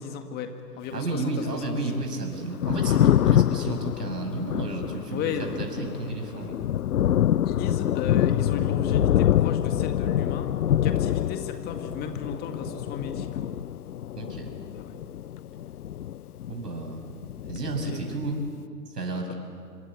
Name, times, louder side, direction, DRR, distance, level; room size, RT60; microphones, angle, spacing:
voice 1, 0.0-2.0 5.1-5.6 7.4-13.5 14.8-15.0 17.9-18.2, left 6 dB, 20° left, 6 dB, 2.0 m, -35 dB
voice 2, 0.9-5.3 5.6-6.6 14.2-14.5 16.5-17.0 17.5-18.4 18.9-19.3, right 2 dB, 70° right, 3 dB, 6.3 m, -32 dB
Thunder, 2.4-16.8 17.1-18.4, left 11 dB, 65° left, 0.6 m, -26 dB
26.5 x 25.0 x 8.5 m, 2.3 s
figure-of-eight pair, 125°, 49 cm